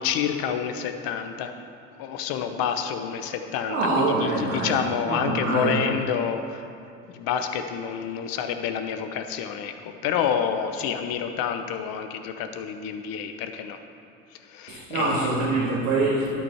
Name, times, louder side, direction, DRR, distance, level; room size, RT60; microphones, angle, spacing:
voice 1, 0.0-1.5 2.0-6.6 7.1-13.8 14.4-15.3, left 8 dB, 65° left, 7 dB, 0.9 m, -28 dB
voice 2, 3.7-5.8 14.7-16.4, right 3 dB, 80° right, -6 dB, 1.7 m, -25 dB
11.5 x 4.8 x 5.8 m, 2.6 s
hypercardioid pair, 65°, 39 cm